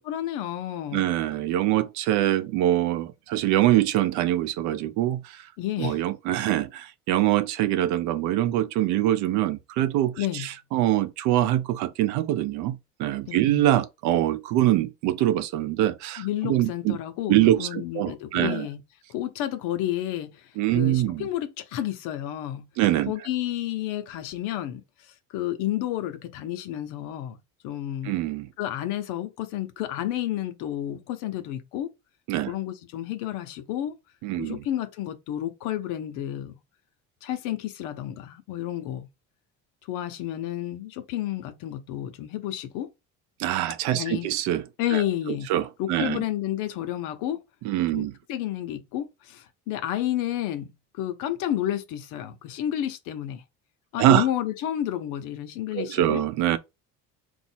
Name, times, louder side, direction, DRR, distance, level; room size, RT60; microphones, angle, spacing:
voice 1, 0.0-1.1 5.6-6.0 10.2-10.5 13.3-13.7 16.2-18.8 19.1-22.7 23.1-27.4 27.6-28.1 28.6-31.9 32.5-34.0 34.4-36.6 37.2-39.1 39.9-42.9 43.9-44.3 44.8-45.5 45.8-47.4 47.9-53.4 53.9-56.2, left 12 dB, 80° left, 0.9 m, -31 dB
voice 2, 0.9-5.5 5.8-17.0 17.3-18.7 20.6-21.3 22.8-23.1 28.0-28.5 32.3-32.5 34.2-34.6 43.4-44.6 44.9-46.2 47.6-48.1 54.0-54.2 55.7-56.6, right 14 dB, 70° right, 0.6 m, -24 dB
4.1 x 2.6 x 4.4 m
cardioid pair, 180°, 31 cm